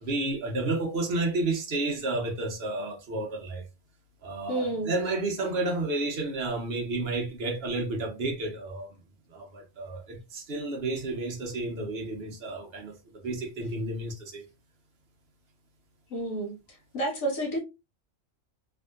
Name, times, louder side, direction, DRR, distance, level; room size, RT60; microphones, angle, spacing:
voice 1, 0.0-3.6 4.2-9.0 9.3-12.9 13.2-14.4, right 2 dB, 50° right, 1.0 m, -31 dB
voice 2, 4.5-4.9 16.1-16.5 16.9-17.6, right 2 dB, 90° left, 1.5 m, -29 dB
3.5 x 2.7 x 2.3 m
omnidirectional pair, 1.4 m